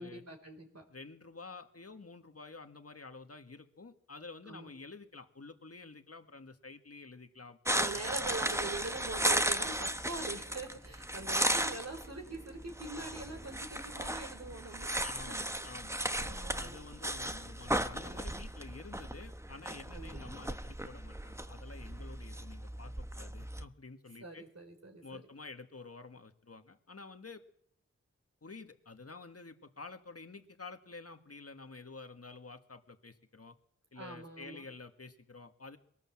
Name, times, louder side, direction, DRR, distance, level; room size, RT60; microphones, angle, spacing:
voice 1, 0.0-0.8 4.4-4.7 7.7-14.9 15.3-15.4 16.1-16.8 19.9-20.4 24.2-25.2 33.9-34.6, right 2 dB, 60° right, 3 dB, 4.3 m, -43 dB
voice 2, 0.9-8.1 15.0-24.4 25.0-27.4 28.4-33.6 33.9-35.8, left 3 dB, 55° left, 7 dB, 1.8 m, -50 dB
sound 1, 7.6-23.6, right 1 dB, 10° right, 1.0 m, -36 dB
22.5 x 18.5 x 7.6 m, 0.66 s
wide cardioid pair, 55°, 29 cm